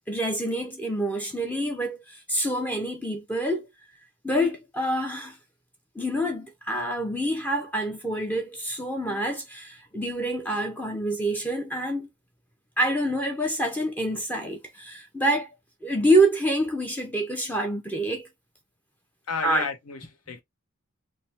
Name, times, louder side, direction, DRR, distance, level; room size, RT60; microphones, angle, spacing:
voice 1, 0.1-3.7 4.2-5.4 6.0-12.1 12.8-15.5 15.8-18.3 19.4-19.7, right 1 dB, 10° left, 0.5 m, -26 dB
voice 2, 19.3-20.4, left 5 dB, 80° left, 0.7 m, -32 dB
3.1 x 2.1 x 2.7 m
head